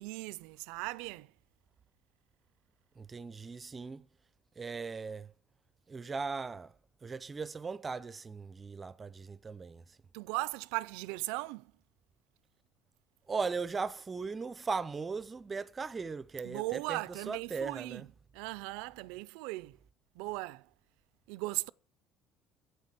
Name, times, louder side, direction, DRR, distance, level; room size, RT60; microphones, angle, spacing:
voice 1, 0.0-1.3 10.1-11.7 16.4-18.1 18.3-19.8 20.1-20.7 21.3-21.7, right 22 dB, 90° right, 0.4 m, -38 dB
voice 2, 3.0-4.1 4.6-5.3 5.9-6.7 7.0-10.0 13.3-18.1, right 4 dB, 25° right, 0.6 m, -38 dB
9.8 x 8.1 x 8.1 m
cardioid pair, 125°, 0 cm